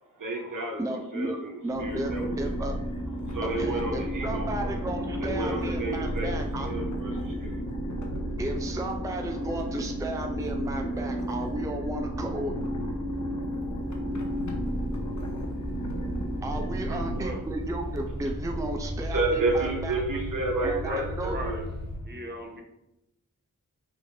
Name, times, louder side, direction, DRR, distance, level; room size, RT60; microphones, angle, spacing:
voice 1, 0.2-2.3 3.3-4.8 5.2-7.5 19.1-21.6, right 2 dB, 70° right, 1 dB, 1.0 m, -31 dB
voice 2, 0.8-1.4 1.6-2.7 3.4-6.7 8.4-12.5 16.4-20.0 20.6-21.4, right 1 dB, 10° right, 3 dB, 0.5 m, -34 dB
sound 1, 1.7-17.3, equal, 60° left, 0.9 m, -33 dB
Purr, 1.7-19.4, right 1 dB, 85° right, 1.4 m, -38 dB
sound 2, 14.1-22.0, left 1 dB, 85° left, 1.3 m, -38 dB
voice 3, 16.9-17.4 19.3-19.6 20.9-21.7 22.1-22.6, right 1 dB, 30° right, 2 dB, 1.0 m, -39 dB
4.0 x 2.6 x 4.8 m, 0.88 s
cardioid pair, 45°, 33 cm